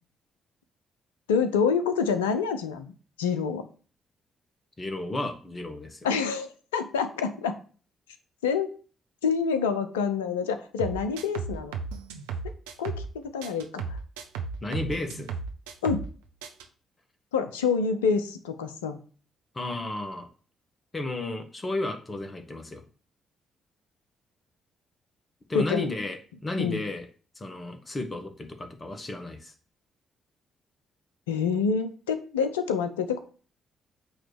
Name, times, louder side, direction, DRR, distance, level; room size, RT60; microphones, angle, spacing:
voice 1, 1.3-2.9 3.2-3.6 6.0-7.6 8.4-8.7 9.2-11.8 12.8-13.8 15.8-16.0 17.3-19.0 25.5-25.9 26.6-26.8 31.3-33.2, left 6 dB, 80° left, 10 dB, 0.7 m, -27 dB
voice 2, 4.8-6.0 14.6-15.3 19.5-20.3 20.9-22.8 25.5-26.2 26.4-27.0 27.3-29.5, left 2 dB, 30° left, 5 dB, 1.7 m, -33 dB
sound 1, 10.8-13.1 13.4-16.1 16.4-16.6, right 5 dB, 75° right, 0.8 m, -35 dB
8.8 x 3.2 x 6.6 m, 0.40 s
figure-of-eight pair, 40°, 0 cm